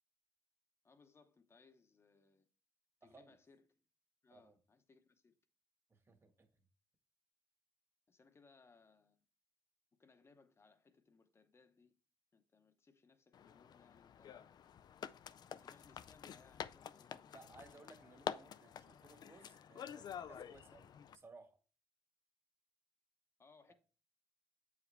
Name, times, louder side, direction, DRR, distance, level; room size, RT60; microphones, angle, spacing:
voice 1, 0.8-2.5 3.0-3.8 4.2-5.3 8.1-9.2 10.0-12.0 12.3-14.6 15.5-17.5 18.3-18.4 23.4-23.7, left 4 dB, 30° left, 0.9 m, -67 dB
voice 2, 3.0-3.4 4.3-4.5 5.9-6.6 17.3-21.6 23.7-23.8, right 3 dB, 30° right, 1.6 m, -61 dB
sound 1, 13.3-21.1, left 8 dB, 55° left, 0.4 m, -49 dB
8.0 x 4.9 x 3.3 m
cardioid pair, 100°, 9 cm